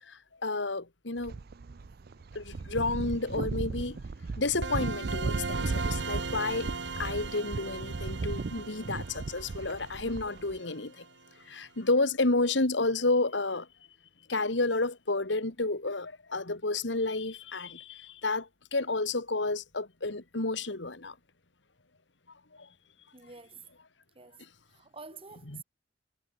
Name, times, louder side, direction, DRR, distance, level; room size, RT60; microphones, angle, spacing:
voice 1, 0.1-1.4 2.3-4.0 4.4-6.7 7.0-11.0 11.5-13.7 14.3-21.1 22.6-22.7 25.5-25.6, left 2 dB, 80° left, 2.2 m, -31 dB
sound 1, 1.2-10.6, right 3 dB, 60° right, 0.5 m, -36 dB
sound 2, 4.6-11.3, right 4 dB, 80° right, 3.1 m, -39 dB
voice 2, 23.1-23.6 24.2-24.4 24.7-25.6, right 4 dB, 30° right, 3.7 m, -48 dB
head